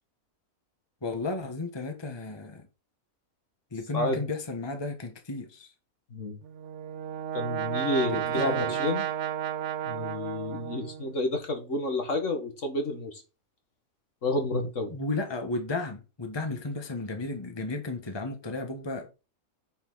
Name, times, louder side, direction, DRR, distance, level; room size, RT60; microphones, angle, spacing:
voice 1, 1.0-2.6 3.7-5.7 8.1-8.8 14.9-19.1, left 3 dB, 20° left, 1.3 m, -34 dB
Brass instrument, 6.4-11.2, right 10 dB, 60° right, 0.9 m, -32 dB
voice 2, 7.3-9.1 9.9-13.2 14.2-14.9, left 2 dB, 60° left, 2.1 m, -30 dB
8.5 x 5.4 x 4.0 m
omnidirectional pair, 1.5 m